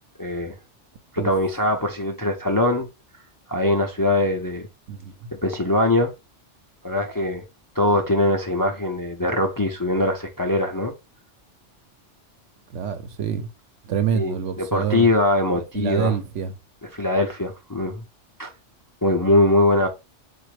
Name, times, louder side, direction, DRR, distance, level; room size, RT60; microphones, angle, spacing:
voice 1, 0.2-0.5 1.1-2.9 3.5-4.7 5.4-6.1 6.8-7.4 7.8-10.9 14.1-16.2 16.9-18.0 18.4-18.5 19.0-19.9, left 1 dB, 30° left, 0.4 m, -22 dB
voice 2, 4.9-5.3 12.7-13.5 13.8-15.1 15.6-16.5, right 8 dB, 75° right, 1.0 m, -26 dB
4.2 x 2.5 x 4.7 m
omnidirectional pair, 1.2 m